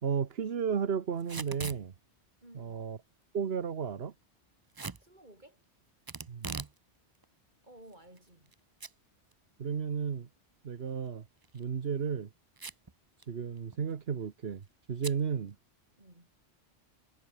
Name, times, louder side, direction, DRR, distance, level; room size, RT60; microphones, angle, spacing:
voice 1, 0.0-1.9 2.5-3.0 3.3-4.1 6.3-6.6 9.6-10.3 10.6-11.2 11.5-12.3 13.3-15.5, right 7 dB, 60° right, 1.4 m, -33 dB
Packing tape duct tape / Tearing, 1.2-1.8 4.7-5.0 6.1-6.8 7.1-7.2 7.9-8.5 8.8-8.9 9.3-9.4 11.4-11.6 12.6-12.9 13.2-13.3 13.6-13.9 15.0-15.2, right 4 dB, 25° right, 0.6 m, -41 dB
voice 2, 2.4-2.8 5.0-5.6 7.6-8.5 16.0-16.3, right 1 dB, 40° right, 6.6 m, -55 dB
omnidirectional pair, 1.2 m